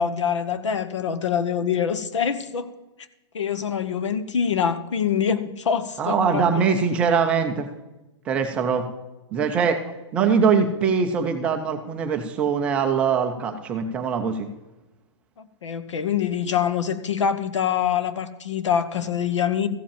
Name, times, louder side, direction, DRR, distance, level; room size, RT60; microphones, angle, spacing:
voice 1, 0.0-2.7 3.3-6.6 15.4-19.7, left 8 dB, 90° left, 12 dB, 1.1 m, -25 dB
voice 2, 6.0-7.7 8.3-8.9 9.3-9.8 10.1-14.5, right 6 dB, 5° right, 4 dB, 0.3 m, -22 dB
14.5 x 5.2 x 6.9 m, 1.0 s
hypercardioid pair, 175°, 15 cm